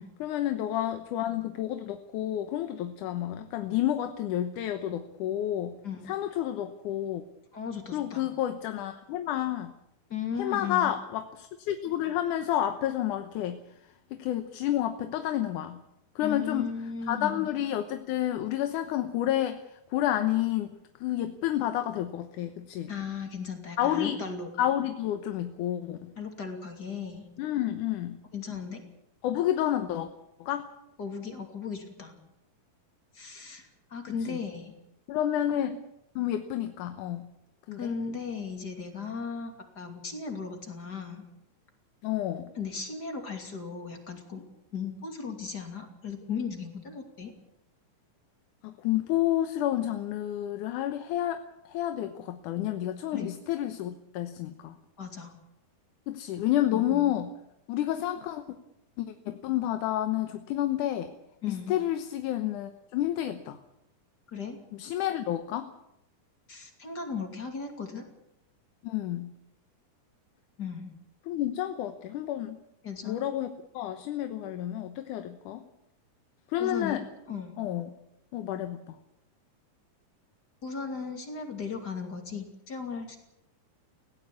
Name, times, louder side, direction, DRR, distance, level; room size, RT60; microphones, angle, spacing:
voice 1, 0.2-5.8 6.1-7.2 7.9-9.7 10.4-13.6 14.1-15.8 16.2-16.7 17.1-22.9 23.8-24.2 24.6-26.1 27.4-28.2 29.2-30.1 30.4-30.7 34.3-34.4 35.1-35.8 36.2-37.3 37.7-37.9 42.0-42.5 48.6-54.8 56.1-57.3 57.7-58.4 59.0-61.1 61.4-63.6 64.7-65.7 68.8-69.3 71.3-72.6 73.0-75.6 76.5-77.1 77.6-77.9 78.3-79.0, left 12 dB, 75° left, 8 dB, 2.4 m, -30 dB
voice 2, 5.8-6.2 7.5-8.3 10.1-10.9 16.2-17.5 22.9-24.5 26.2-27.2 28.3-28.8 31.0-32.2 33.1-34.7 37.7-41.3 42.6-44.4 44.7-47.3 53.1-53.3 55.0-55.3 56.7-57.1 61.4-61.8 64.3-64.6 66.5-68.1 70.6-70.9 72.8-73.3 76.6-77.0 77.3-77.6 80.6-83.2, left 5 dB, 30° left, 4 dB, 2.9 m, -36 dB
19.5 x 17.0 x 8.4 m, 0.84 s
omnidirectional pair, 3.8 m